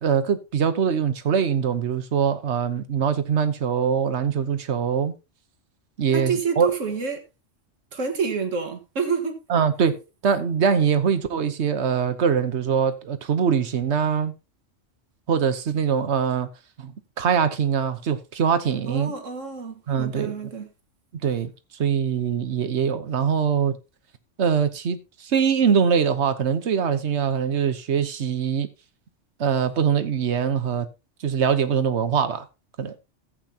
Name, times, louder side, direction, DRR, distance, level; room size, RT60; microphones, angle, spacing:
voice 1, 0.0-5.1 6.0-6.7 9.5-14.3 15.3-16.5 16.8-16.9 17.2-19.1 19.9-20.4 21.1-21.5 21.8-23.8 24.4-28.7 29.4-30.9 31.2-32.4 32.8-32.9, right 7 dB, 65° right, 1.3 m, -23 dB
voice 2, 6.1-7.2 7.9-9.4 18.8-20.7, right 5 dB, 85° right, 2.0 m, -28 dB
14.0 x 8.5 x 2.8 m
omnidirectional pair, 1.3 m